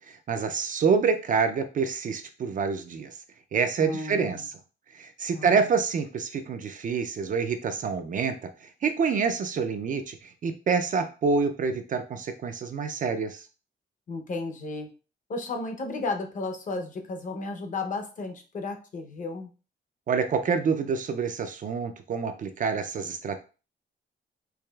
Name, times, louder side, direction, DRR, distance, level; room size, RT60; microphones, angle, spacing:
voice 1, 0.1-3.1 3.5-4.4 4.9-8.3 8.8-13.4 20.1-23.4, right 5 dB, 45° right, 8 dB, 0.4 m, -27 dB
voice 2, 3.8-4.5 5.3-5.7 14.1-14.9 15.3-19.5, left 3 dB, 40° left, 5 dB, 0.6 m, -33 dB
4.7 x 2.8 x 2.2 m, 0.34 s
wide cardioid pair, 180°, 20 cm